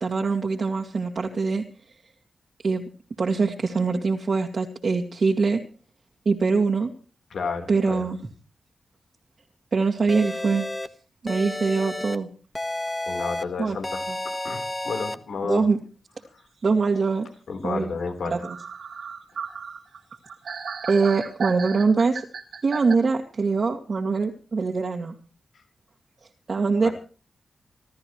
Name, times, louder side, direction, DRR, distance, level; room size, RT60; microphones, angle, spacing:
voice 1, 0.0-1.6 2.6-2.9 3.2-5.6 6.3-6.9 7.7-8.2 9.7-10.7 11.2-12.3 13.6-13.8 14.1-14.2 15.4-15.8 16.6-17.3 17.6-17.9 18.3-18.6 20.9-22.2 22.6-25.1 26.5-26.9, right 4 dB, 55° right, 0 dB, 2.3 m, -23 dB
voice 2, 7.3-8.1 13.1-14.0 14.4-15.7 17.5-18.3 26.8-26.9, left 4 dB, 85° left, 5 dB, 4.0 m, -31 dB
sound 1, 10.1-10.9 11.3-12.2 12.6-13.4 13.8-15.2, left 1 dB, 15° left, 1.4 m, -31 dB
sound 2, 18.0-18.1 18.4-22.9, right 6 dB, 85° right, 2.7 m, -35 dB
27.0 x 14.0 x 3.2 m, 0.38 s
wide cardioid pair, 100°, 0 cm